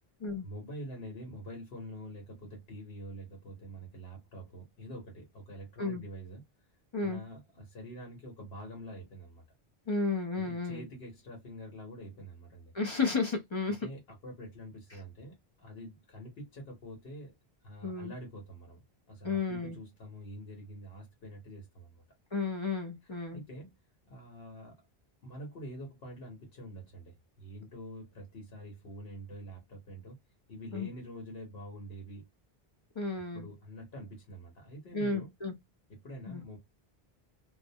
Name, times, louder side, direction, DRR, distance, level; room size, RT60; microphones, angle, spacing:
voice 1, 0.4-6.4 7.0-9.4 10.3-12.7 13.8-17.4 17.6-22.0 23.3-23.8 24.1-24.8 25.2-30.2 30.5-32.3 33.3-35.3 36.0-36.6, equal, 75° left, 1.1 m, -46 dB
voice 2, 9.9-10.9 12.7-13.9 14.9-15.0 17.8-18.1 19.2-19.8 22.3-23.4 30.7-30.9 33.0-33.5 34.9-35.5 36.3-36.4, left 4 dB, 40° left, 0.4 m, -33 dB
2.3 x 2.1 x 2.7 m
omnidirectional pair, 1.0 m